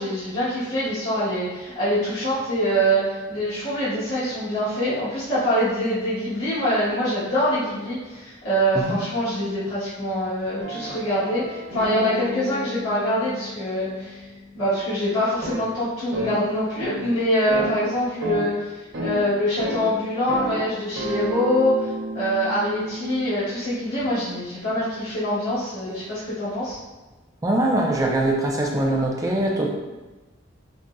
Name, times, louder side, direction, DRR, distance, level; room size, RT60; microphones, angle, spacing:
voice 1, 0.0-14.3 14.5-21.9 22.1-26.8, equal, 80° left, -13 dB, 1.4 m, -24 dB
sound 1, 10.6-14.6 15.4-15.6 16.1-16.4 16.8-17.1 17.5-17.8 18.2-18.5 18.9-19.2 19.6-19.9 20.3-20.6 21.0-23.4, right 1 dB, 55° right, 0.8 m, -32 dB
voice 2, 27.4-29.7, right 1 dB, 15° right, -1 dB, 0.4 m, -22 dB
5.2 x 2.5 x 2.2 m, 1.2 s
head